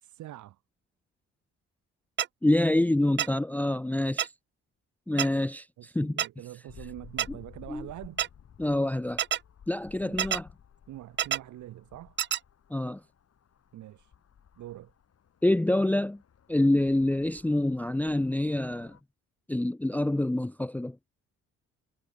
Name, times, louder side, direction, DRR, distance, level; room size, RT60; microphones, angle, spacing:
voice 1, 0.0-0.6 5.8-8.2 10.0-10.4 10.9-12.2 13.7-14.1 14.6-14.9, right 14 dB, 70° right, 1.0 m, -44 dB
sound 1, 2.2-2.3 3.2-3.3 4.2-4.3 5.2-5.3 6.2-6.3 7.2-7.3 8.2-8.3 9.2-9.4 10.2-10.4 11.2-11.4 12.2-12.4, right 10 dB, 40° right, 0.4 m, -26 dB
voice 2, 2.4-4.3 5.1-6.2 7.7-7.9 8.6-9.2 9.7-10.5 12.7-13.0 15.4-16.2 16.5-19.0 19.5-21.0, left 1 dB, 5° left, 0.6 m, -26 dB
sound 2, 6.7-19.0, left 8 dB, 55° left, 4.8 m, -54 dB
cardioid pair, 90°, 30 cm